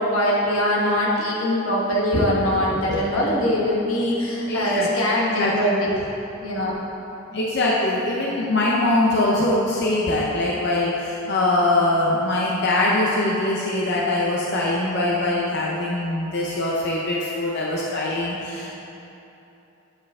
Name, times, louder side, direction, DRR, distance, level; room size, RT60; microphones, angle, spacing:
voice 1, 0.0-5.9 6.4-6.7, equal, 90° left, -4 dB, 1.3 m, -22 dB
voice 2, 2.7-3.2 4.5-4.9 5.4-5.5 7.3-18.7, left 2 dB, 55° left, -4 dB, 0.7 m, -22 dB
8.7 x 4.9 x 3.5 m, 3.0 s
head